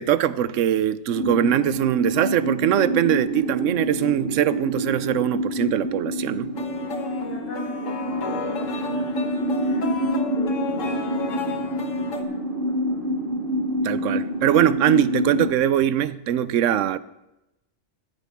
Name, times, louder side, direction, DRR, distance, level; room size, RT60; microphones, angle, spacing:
voice 1, 0.0-6.5 13.8-17.0, right 10 dB, 80° right, 1.0 m, -22 dB
sound 1, 1.1-15.5, equal, 45° right, 1.1 m, -27 dB
sound 2, 6.5-12.2, left 5 dB, 90° left, 1.6 m, -33 dB
voice 2, 7.1-13.1, equal, 45° left, 4.8 m, -42 dB
15.5 x 13.5 x 3.5 m
omnidirectional pair, 1.3 m